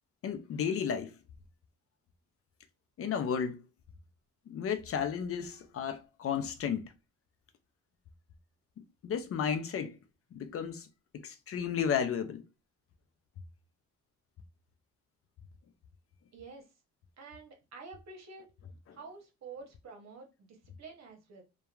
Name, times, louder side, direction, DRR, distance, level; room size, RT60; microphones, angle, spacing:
voice 1, 0.2-1.1 3.0-3.6 4.5-6.9 8.8-10.0 10.3-10.9 11.1-12.4 18.9-19.0, left 7 dB, 50° left, 0.5 m, -33 dB
voice 2, 16.3-16.7 17.2-18.5 18.9-21.4, right 4 dB, 60° right, 0.9 m, -49 dB
2.9 x 2.2 x 2.3 m
cardioid pair, 90°, 30 cm